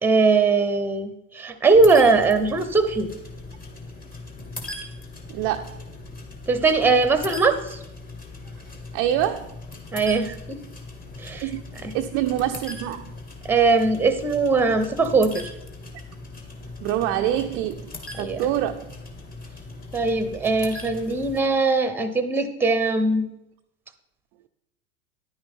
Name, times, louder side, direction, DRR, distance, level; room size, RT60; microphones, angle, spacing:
voice 1, 0.0-3.1 6.5-7.8 9.9-10.6 11.2-11.4 11.8-11.9 13.5-15.5 18.2-18.5 19.9-23.3, right 3 dB, 5° right, 10 dB, 0.8 m, -20 dB
sound 1, 1.7-21.4, left 2 dB, 20° left, 1.6 m, -39 dB
voice 2, 5.3-5.8 8.9-9.6 11.4-11.6 11.9-13.1 16.8-18.9, right 12 dB, 35° right, 5 dB, 0.4 m, -26 dB
9.8 x 9.7 x 3.6 m, 0.88 s
hypercardioid pair, 105°, 42 cm